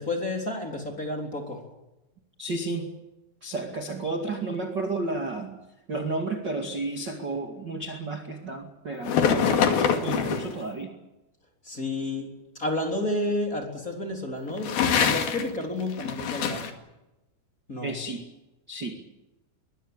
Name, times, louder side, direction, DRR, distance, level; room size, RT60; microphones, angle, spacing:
voice 1, 0.0-1.6 11.6-12.3 12.6-16.7 17.7-18.0, left 1 dB, 20° left, 2 dB, 3.6 m, -30 dB
voice 2, 2.4-2.9 3.4-5.5 5.9-10.9 17.8-18.3 18.7-19.0, right 3 dB, 35° right, 4 dB, 1.8 m, -32 dB
sound 1, 9.0-10.6 14.5-15.5 15.8-16.7, left 7 dB, 55° left, 3.7 m, -24 dB
23.5 x 20.0 x 8.9 m, 1.0 s
omnidirectional pair, 5.5 m